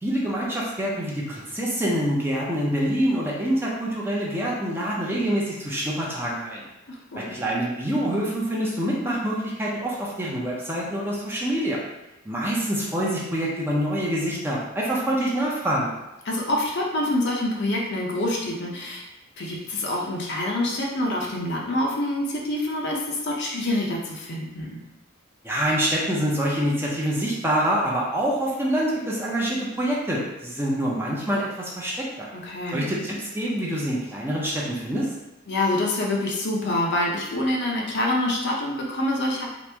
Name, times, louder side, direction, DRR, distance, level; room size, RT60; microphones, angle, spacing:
voice 1, 0.0-6.7 7.1-11.8 12.3-15.9 25.4-32.3 32.7-35.1, equal, 10° right, -4 dB, 0.5 m, -26 dB
voice 2, 6.9-7.4 16.3-19.0 19.4-24.8 32.3-32.9 35.5-39.5, left 1 dB, 55° left, -1 dB, 0.6 m, -26 dB
3.0 x 2.5 x 3.3 m, 0.96 s
head